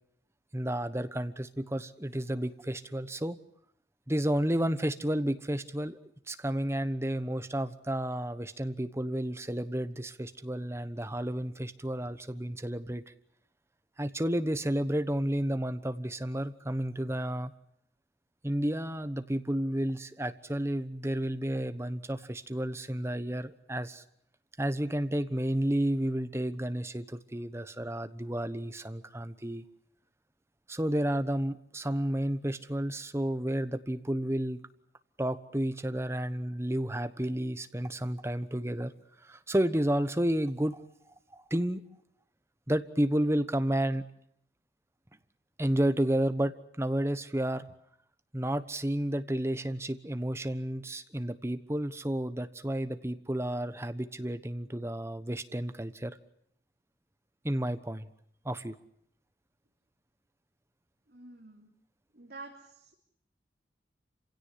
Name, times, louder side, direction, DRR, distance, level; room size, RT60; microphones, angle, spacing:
voice 1, 0.5-3.4 4.1-6.0 6.3-13.1 14.0-17.5 18.4-24.0 24.6-29.6 30.7-34.6 35.2-38.9 39.2-40.8 41.3-41.8 42.7-44.0 45.6-47.7 48.3-56.2 57.4-58.1 58.4-58.8, right 1 dB, 15° right, 11 dB, 1.1 m, -31 dB
voice 2, 61.1-61.7 62.1-63.0, right 3 dB, 55° right, 0 dB, 3.3 m, -48 dB
27.5 x 17.0 x 9.8 m, 0.72 s
head